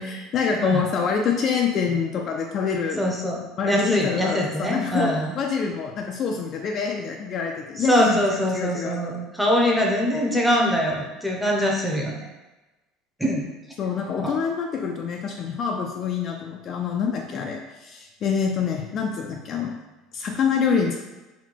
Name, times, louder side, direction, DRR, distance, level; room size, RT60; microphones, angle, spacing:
voice 1, 0.0-3.0 3.6-9.2 13.8-19.8 20.1-21.0, left 6 dB, 40° left, 2 dB, 0.4 m, -26 dB
voice 2, 3.0-3.4 3.7-5.3 7.8-12.3 13.2-13.5 14.2-14.3, equal, ahead, -2 dB, 0.7 m, -23 dB
4.0 x 2.2 x 4.5 m, 1.1 s
cardioid pair, 140°, 0 cm